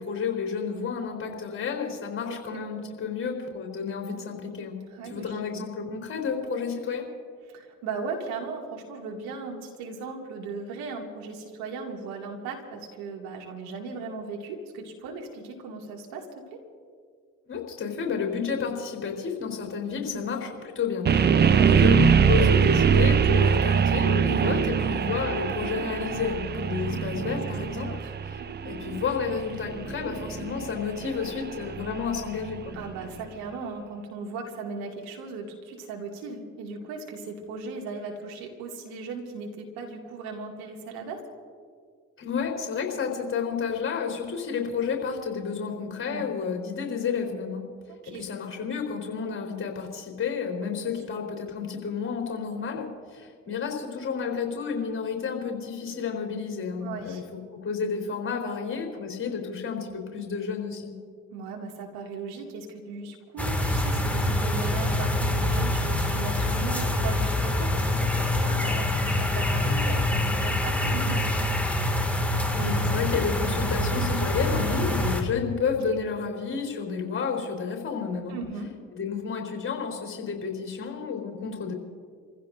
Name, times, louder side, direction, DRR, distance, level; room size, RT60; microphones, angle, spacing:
voice 1, 0.0-4.8 5.0-7.0 17.5-27.9 28.6-32.8 42.2-47.6 48.1-57.2 57.5-60.9 72.5-78.4 78.9-81.7, left 6 dB, 35° left, 1 dB, 4.1 m, -31 dB
voice 2, 2.3-2.6 4.9-5.4 7.5-16.3 16.5-16.6 19.9-20.2 21.4-21.7 24.5-24.9 27.5-27.6 27.9-28.1 32.7-41.2 46.1-46.2 48.0-48.2 56.8-57.2 61.3-71.5 78.3-78.7, right 4 dB, 65° right, 1 dB, 2.4 m, -37 dB
sound 1, 21.1-33.0, right 7 dB, 25° right, 0.7 m, -23 dB
sound 2, 63.4-75.2, left 1 dB, 5° left, 2.2 m, -25 dB
29.5 x 15.5 x 2.7 m, 2.1 s
hypercardioid pair, 55°, 38 cm